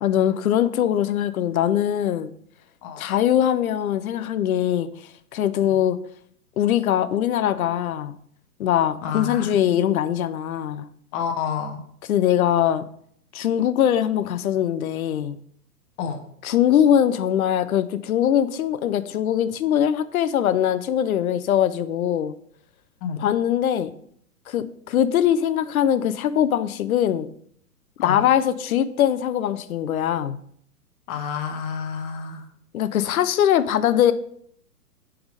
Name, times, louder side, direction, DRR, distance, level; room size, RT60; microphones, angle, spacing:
voice 1, 0.0-2.3 3.0-4.9 5.3-6.0 6.6-8.2 8.6-10.9 12.1-12.8 13.3-15.4 16.4-22.3 23.2-23.9 24.5-27.3 28.0-30.4 32.7-34.1, left 10 dB, 65° left, 13 dB, 0.6 m, -21 dB
voice 2, 9.0-9.5 11.1-11.8 16.0-16.2 23.0-23.3 28.0-28.3 31.1-32.5, left 7 dB, 25° left, 4 dB, 0.8 m, -29 dB
6.2 x 3.6 x 4.9 m, 0.65 s
hypercardioid pair, 125°, 47 cm